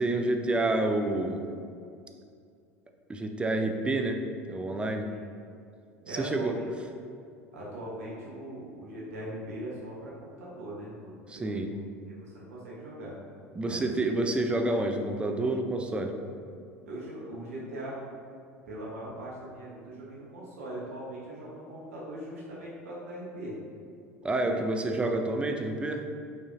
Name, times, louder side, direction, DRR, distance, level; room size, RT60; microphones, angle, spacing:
voice 1, 0.0-1.5 3.1-4.2 4.5-5.1 6.1-6.6 11.3-11.7 13.6-16.1 24.2-26.1, right 2 dB, 15° right, 4 dB, 0.4 m, -28 dB
voice 2, 6.0-6.6 7.5-10.1 10.4-11.8 12.1-13.1 13.6-13.9 16.8-17.9 18.6-23.6 24.4-24.6, right 1 dB, 75° right, -6 dB, 1.1 m, -40 dB
5.3 x 2.8 x 2.6 m, 2.4 s
hypercardioid pair, 75°, 8 cm